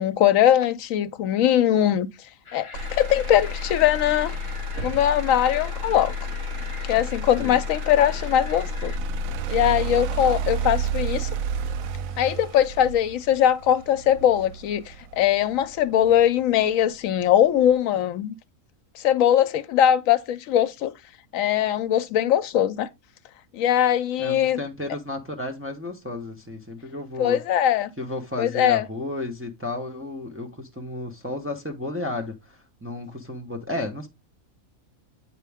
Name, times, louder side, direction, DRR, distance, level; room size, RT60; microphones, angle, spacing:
voice 1, 0.0-2.1 2.5-4.3 4.8-6.1 6.9-8.9 9.5-11.3 12.2-18.3 19.0-20.9 21.3-22.9 23.5-24.6 27.2-27.9 28.4-28.8, left 10 dB, 70° left, 1.0 m, -21 dB
sound 1, 2.4-9.0, left 4 dB, 35° left, 0.5 m, -44 dB
Motor vehicle (road), 2.7-16.8 17.2-17.7, right 2 dB, 75° right, 1.0 m, -31 dB
voice 2, 24.2-27.4 28.0-34.1, left 2 dB, 10° right, 0.8 m, -33 dB
8.3 x 4.5 x 3.4 m
omnidirectional pair, 1.5 m